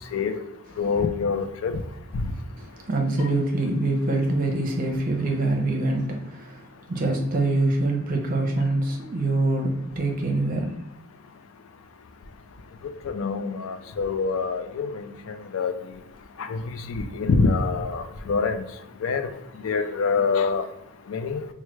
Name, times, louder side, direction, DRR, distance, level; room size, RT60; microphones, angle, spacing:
voice 1, 0.8-1.8 2.1-2.2 13.0-15.7 16.4-18.6 19.0-19.3 19.6-20.7 21.1-21.4, left 4 dB, 70° left, 9 dB, 0.4 m, -25 dB
voice 2, 2.5-10.7, right 2 dB, 40° right, 2 dB, 0.6 m, -25 dB
4.5 x 2.2 x 3.1 m, 0.87 s
head